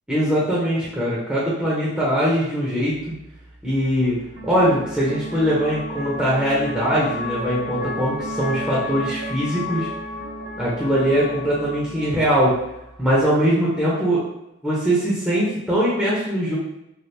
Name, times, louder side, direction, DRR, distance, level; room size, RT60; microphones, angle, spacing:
voice 1, 0.1-2.9 3.6-9.9 10.6-12.6 13.0-14.2 14.6-16.6, equal, 5° right, -8 dB, 0.6 m, -21 dB
sound 1, 2.9-13.2, left 1 dB, 75° right, 0.6 m, -33 dB
3.2 x 2.4 x 2.7 m, 0.85 s
head